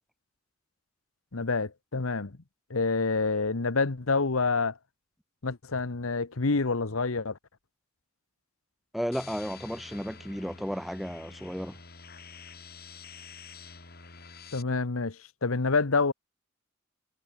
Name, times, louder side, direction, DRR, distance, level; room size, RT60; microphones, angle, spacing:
voice 1, 1.3-2.3 2.7-4.8 5.4-7.4 14.5-16.1, left 4 dB, 85° left, 1.2 m, -27 dB
voice 2, 8.9-11.8, equal, ahead, 3.9 m, -34 dB
sound 1, 9.1-14.6, left 5 dB, 50° left, 6.7 m, -48 dB
head